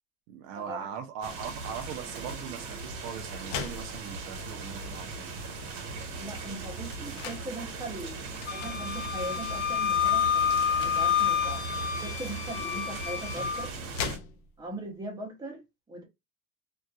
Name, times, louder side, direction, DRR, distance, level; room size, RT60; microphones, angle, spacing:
voice 1, 0.3-5.3, right 8 dB, 60° right, 0.6 m, -40 dB
sound 1, 1.2-14.2, right 3 dB, 85° right, 1.1 m, -39 dB
sound 2, 1.4-1.7 2.6-4.6 5.2-5.3 5.5-7.5 8.4-8.8 9.3-9.6 10.4-11.1 12.5-12.6 13.2-14.8, left 6 dB, 50° left, 0.5 m, -40 dB
voice 2, 6.2-13.7 14.6-16.0, right 2 dB, 15° right, 0.6 m, -40 dB
Wind instrument woodwind instrument, 8.5-13.7, left 8 dB, 70° left, 0.9 m, -28 dB
2.7 x 2.3 x 2.3 m
cardioid pair, 170°, 29 cm